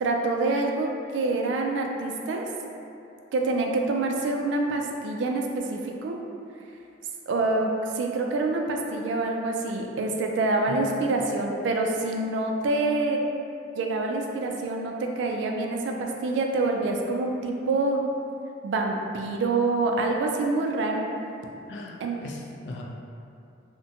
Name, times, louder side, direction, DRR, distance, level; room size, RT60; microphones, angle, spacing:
voice 1, 0.0-2.5 3.3-6.2 7.3-13.2 13.8-18.0 18.6-21.1 22.0-22.2, right 2 dB, 85° right, 2 dB, 0.3 m, -26 dB
voice 2, 21.7-22.8, left 2 dB, 75° left, 0 dB, 0.3 m, -39 dB
2.5 x 2.1 x 2.7 m, 2.6 s
head